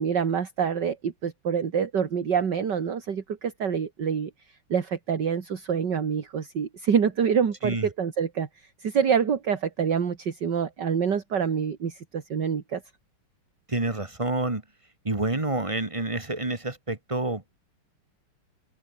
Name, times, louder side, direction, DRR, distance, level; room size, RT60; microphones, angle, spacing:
voice 1, 0.0-4.3 4.7-12.8, right 7 dB, 50° right, 2.5 m, -26 dB
voice 2, 13.7-14.6 15.0-17.6, right 2 dB, 15° right, 1.7 m, -28 dB
open air
omnidirectional pair, 2.4 m